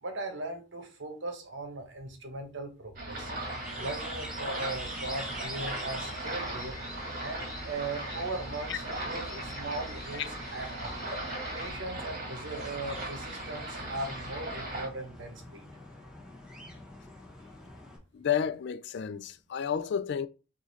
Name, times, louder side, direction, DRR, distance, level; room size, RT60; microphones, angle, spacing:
voice 1, 0.0-3.3 3.8-6.8 7.2-10.9 11.5-15.6, right 2 dB, 60° right, 1.1 m, -39 dB
sound 1, 3.0-14.9, right 1 dB, 45° right, 1.6 m, -38 dB
sound 2, 3.1-18.0, equal, 5° right, 1.2 m, -46 dB
sound 3, 4.7-11.7, left 2 dB, 20° left, 0.8 m, -48 dB
voice 2, 18.1-20.3, left 8 dB, 55° left, 0.3 m, -31 dB
4.8 x 2.7 x 4.0 m
head